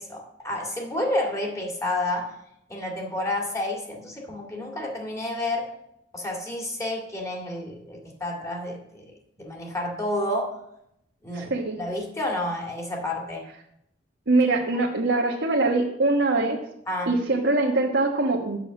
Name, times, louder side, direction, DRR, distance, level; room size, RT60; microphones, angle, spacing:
voice 1, 0.0-2.3 2.7-5.6 6.1-9.1 9.4-10.5 11.2-13.4 16.9-17.1, left 1 dB, 15° left, 0 dB, 2.1 m, -30 dB
voice 2, 11.3-11.8 14.3-16.6 17.1-18.6, right 2 dB, 85° right, -2 dB, 1.2 m, -23 dB
7.0 x 6.4 x 7.4 m, 0.77 s
head